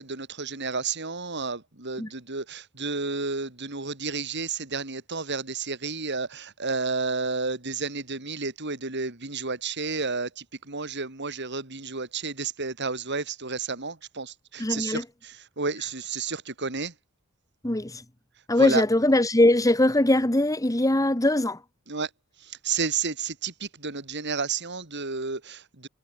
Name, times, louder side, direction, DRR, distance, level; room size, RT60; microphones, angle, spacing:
voice 1, 0.0-16.9 18.6-18.8 21.9-22.1 22.4-25.9, right 4 dB, 55° right, 4.0 m, -31 dB
voice 2, 14.6-15.0 17.6-18.0 18.5-21.6, left 1 dB, 15° left, 1.6 m, -21 dB
head